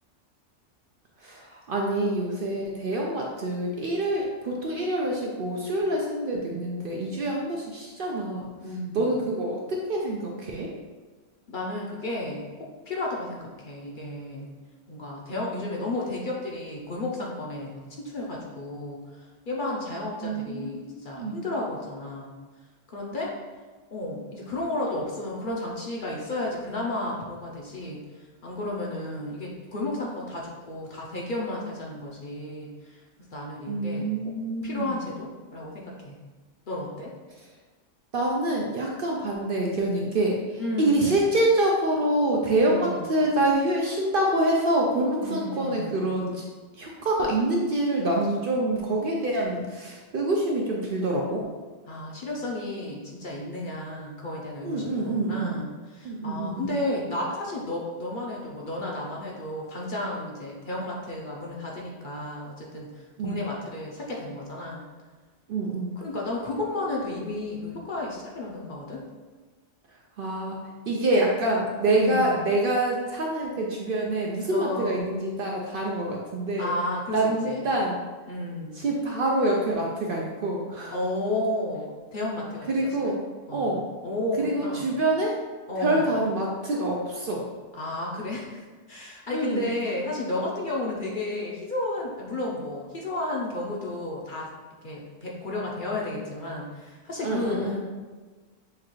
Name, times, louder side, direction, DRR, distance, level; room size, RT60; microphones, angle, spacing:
voice 1, 1.2-8.5 8.9-10.7 20.2-21.4 33.7-34.9 38.1-46.5 46.7-51.5 54.6-55.6 56.0-56.7 63.2-63.4 65.5-65.9 70.2-70.6 70.9-76.7 77.1-78.0 78.8-80.9 82.7-83.2 83.5-83.9 84.4-85.4 85.8-87.4 89.3-89.7 97.2-97.8, right 1 dB, 60° right, -1 dB, 0.6 m, -26 dB
voice 2, 8.6-9.3 11.5-14.5 14.9-22.3 22.9-23.3 23.9-34.1 34.6-36.2 36.7-37.1 40.6-41.3 42.6-43.3 45.2-46.1 51.9-64.8 66.0-69.0 71.9-72.5 74.5-75.1 76.6-77.7 78.3-78.8 80.9-82.7 83.0-83.1 83.5-83.7 84.0-84.9 85.7-86.1 87.7-88.6 88.9-94.5 94.8-97.8, left 2 dB, 50° left, -3 dB, 0.7 m, -33 dB
6.5 x 2.4 x 3.1 m, 1.3 s
omnidirectional pair, 1.2 m